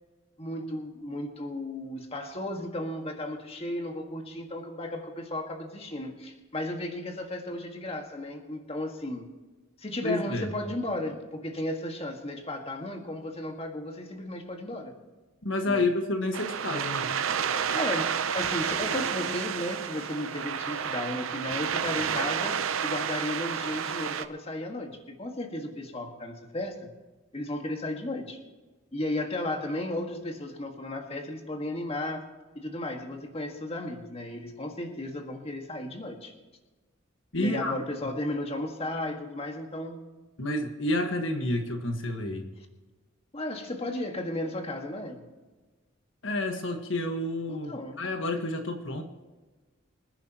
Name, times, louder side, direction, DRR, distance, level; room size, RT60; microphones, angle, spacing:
voice 1, 0.4-9.3 9.8-15.0 15.7-15.8 17.7-26.9 27.3-28.4 28.9-32.3 32.6-36.3 37.4-40.0 43.3-45.2 47.5-48.0, left 1 dB, 30° left, 3 dB, 1.7 m, -34 dB
voice 2, 10.0-10.5 15.4-17.1 37.3-37.7 40.4-42.5 46.2-49.0, left 2 dB, 65° left, 4 dB, 1.5 m, -29 dB
sound 1, 16.3-24.3, right 7 dB, 85° right, 0.7 m, -30 dB
25.5 x 10.5 x 3.0 m, 1.3 s
head